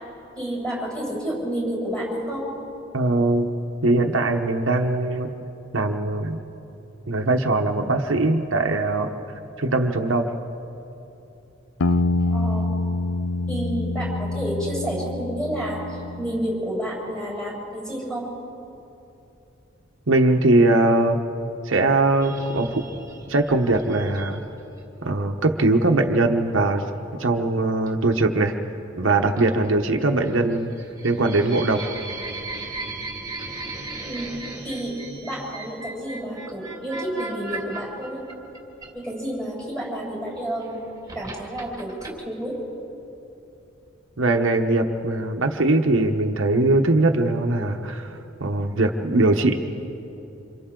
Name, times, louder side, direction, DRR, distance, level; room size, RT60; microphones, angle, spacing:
voice 1, 0.4-2.5 12.3-12.7 13.5-18.3 34.0-34.3 34.6-38.2 38.9-40.8 41.1-42.6, right 1 dB, 5° left, -5 dB, 7.0 m, -30 dB
voice 2, 2.9-3.5 3.8-5.3 5.7-6.4 7.1-9.1 9.6-10.3 20.1-21.2 21.6-22.8 23.3-24.4 25.0-26.8 27.2-28.5 29.0-30.7 31.0-31.8 44.2-49.5, right 2 dB, 75° right, 3 dB, 1.1 m, -21 dB
sound 1, 11.8-16.5, left 2 dB, 85° left, 0.6 m, -26 dB
sound 2, 22.2-24.8 26.4-26.7 27.9-28.1 29.3-29.9 30.2-39.3 40.4-42.1, right 3 dB, 20° right, 2.3 m, -37 dB
28.0 x 27.0 x 3.9 m, 2.9 s
head